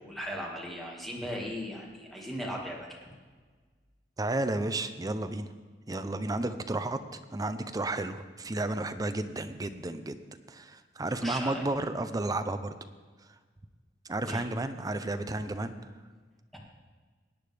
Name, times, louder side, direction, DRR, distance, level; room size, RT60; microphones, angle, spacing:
voice 1, 0.0-3.1 11.2-11.6 14.2-14.4 16.5-16.6, equal, ahead, -3 dB, 1.9 m, -38 dB
voice 2, 4.2-5.5 5.9-10.2 10.5-12.7 14.0-15.9, right 2 dB, 20° right, 9 dB, 0.6 m, -32 dB
17.5 x 9.5 x 3.4 m, 1.5 s
head